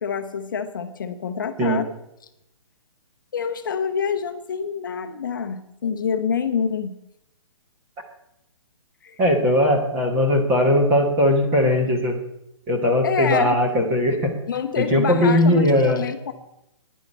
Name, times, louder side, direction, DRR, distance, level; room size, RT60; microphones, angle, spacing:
voice 1, 0.0-1.9 3.3-7.0 9.0-9.2 13.0-13.6 14.5-16.3, left 6 dB, 40° left, 7 dB, 0.7 m, -27 dB
voice 2, 9.2-12.2 12.7-14.3 14.8-16.1, left 1 dB, 10° right, 2 dB, 1.1 m, -19 dB
10.5 x 10.0 x 5.4 m, 0.83 s
hypercardioid pair, 175°, 16 cm